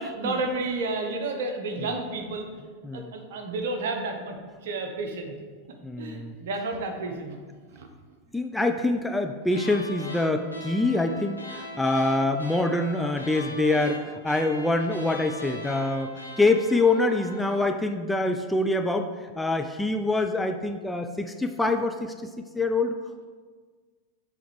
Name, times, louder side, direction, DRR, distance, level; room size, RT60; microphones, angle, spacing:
voice 1, 0.0-2.5 2.9-4.4 4.6-5.3 6.0-7.4 7.7-7.9, right 3 dB, 55° right, 4 dB, 0.9 m, -31 dB
voice 2, 5.8-6.4 8.3-22.3 22.5-23.0, left 2 dB, 5° left, 5 dB, 0.3 m, -25 dB
sound 1, 9.5-17.7, left 1 dB, 85° left, 0.9 m, -40 dB
7.7 x 3.4 x 4.7 m, 1.5 s
figure-of-eight pair, 90°, 0 cm